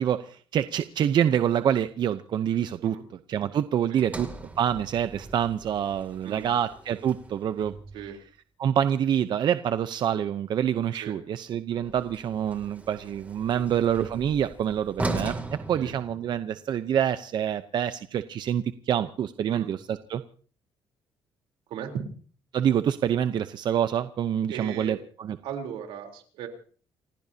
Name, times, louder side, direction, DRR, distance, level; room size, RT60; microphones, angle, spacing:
voice 1, 0.0-2.9 3.3-4.3 4.6-7.7 8.6-15.3 15.7-20.2 22.5-25.4, right 9 dB, 55° right, 11 dB, 0.8 m, -26 dB
Sliding door, 4.0-8.2 11.7-16.7, right 2 dB, 15° right, 2.6 m, -38 dB
voice 2, 24.5-25.0 25.4-26.5, right 8 dB, 85° right, 3 dB, 3.7 m, -37 dB
29.0 x 15.5 x 2.8 m, 0.43 s
cardioid pair, 115°, 9 cm